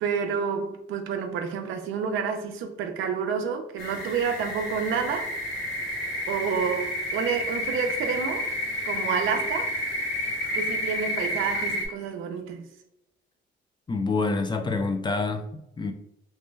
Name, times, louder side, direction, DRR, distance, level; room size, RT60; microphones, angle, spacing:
voice 1, 0.0-5.3 6.3-8.5 8.8-9.8 10.5-12.7, right 6 dB, 85° right, 0.5 m, -29 dB
sound 1, 3.8-11.9, left 1 dB, 90° left, 0.9 m, -30 dB
voice 2, 13.9-15.9, left 3 dB, 25° left, 0.4 m, -27 dB
3.2 x 2.2 x 3.2 m
cardioid pair, 90°, 20 cm